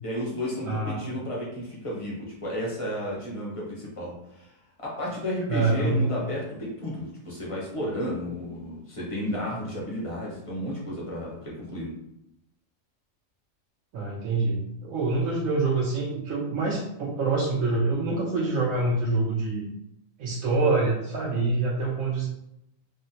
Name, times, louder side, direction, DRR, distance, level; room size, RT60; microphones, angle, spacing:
voice 1, 0.0-11.9, equal, 30° left, -5 dB, 0.7 m, -33 dB
voice 2, 0.6-1.0 5.5-6.0 13.9-19.7 20.2-22.3, right 3 dB, 85° right, -4 dB, 1.0 m, -26 dB
3.6 x 2.0 x 2.7 m, 0.82 s
omnidirectional pair, 1.4 m